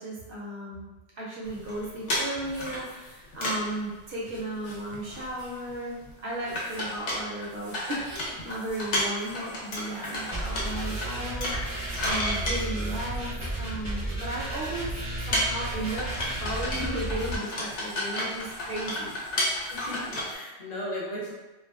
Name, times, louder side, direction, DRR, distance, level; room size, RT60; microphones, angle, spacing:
voice 1, 0.0-14.9 15.2-19.2, right 1 dB, 60° right, -5 dB, 0.7 m, -35 dB
sound 1, 1.4-3.7 4.0-4.1 4.3-4.4 4.6-5.7 6.0-6.1 6.4-13.6 14.4-14.5 14.7-20.3, left 1 dB, 85° left, 1.0 m, -32 dB
sound 2, 10.3-17.4, right 1 dB, 30° left, 1.1 m, -33 dB
sound 3, 11.5-16.9, equal, ahead, 0.5 m, -42 dB
voice 2, 19.7-21.3, left 1 dB, 45° left, -5 dB, 0.6 m, -36 dB
2.4 x 2.3 x 2.2 m, 1.1 s
omnidirectional pair, 1.2 m